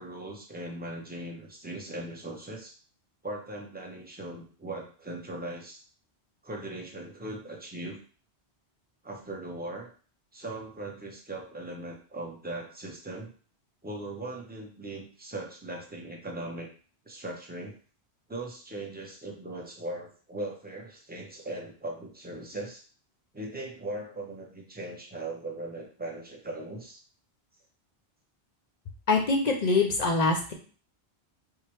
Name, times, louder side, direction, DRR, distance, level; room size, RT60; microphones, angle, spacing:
voice 1, 0.0-2.7 3.2-5.8 6.4-8.0 9.0-9.9 10.3-13.3 13.8-16.7 17.1-17.8 18.3-22.8 23.3-27.0, right 2 dB, 10° right, 0 dB, 0.5 m, -39 dB
voice 2, 29.1-30.5, left 3 dB, 50° left, 2 dB, 0.6 m, -24 dB
4.6 x 2.1 x 3.0 m, 0.40 s
omnidirectional pair, 1.1 m